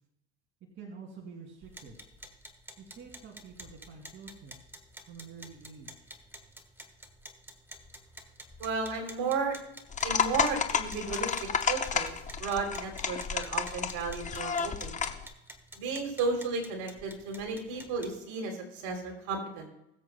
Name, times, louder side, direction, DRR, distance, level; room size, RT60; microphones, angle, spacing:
voice 1, 0.7-2.1 2.8-4.7 5.1-6.1, right 5 dB, 40° right, -1 dB, 2.5 m, -48 dB
sound 1, 1.6-18.2, right 1 dB, 5° right, 1.2 m, -51 dB
voice 2, 8.6-9.6 10.0-11.3 11.7-12.1 12.4-15.0 15.8-19.7, right 4 dB, 60° right, 2 dB, 3.2 m, -33 dB
sound 2, 9.9-15.2, left 6 dB, 25° left, 0.9 m, -31 dB
21.0 x 7.7 x 2.2 m, 0.84 s
supercardioid pair, 110°, 32 cm